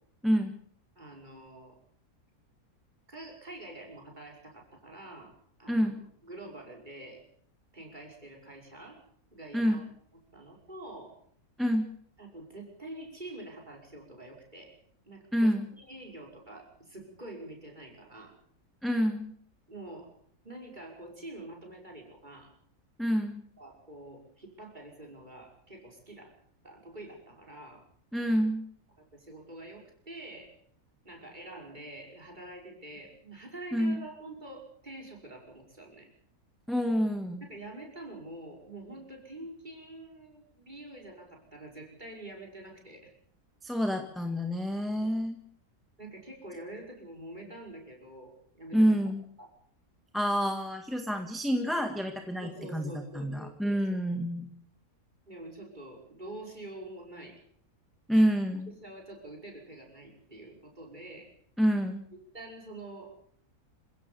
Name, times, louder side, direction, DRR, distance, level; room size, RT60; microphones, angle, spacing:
voice 1, 0.2-0.5 5.7-6.0 9.5-9.8 11.6-11.9 15.3-15.7 18.8-19.3 23.0-23.4 28.1-28.6 33.7-34.0 36.7-37.4 43.6-45.4 48.7-49.2 50.1-54.5 58.1-58.7 61.6-62.1, equal, ahead, 4 dB, 1.7 m, -28 dB
voice 2, 1.0-1.8 3.1-5.3 5.6-5.9 6.2-7.2 7.7-9.0 9.3-9.9 10.3-11.1 12.2-14.8 15.0-18.4 19.7-20.1 20.4-22.5 23.6-26.3 26.6-27.8 29.0-30.6 31.0-36.1 37.4-43.1 46.0-48.9 49.4-49.5 52.4-53.8 55.3-57.4 58.1-58.3 58.7-61.3 62.3-63.1, right 1 dB, 30° right, 0 dB, 5.9 m, -46 dB
27.5 x 16.5 x 7.0 m, 0.64 s
omnidirectional pair, 1.6 m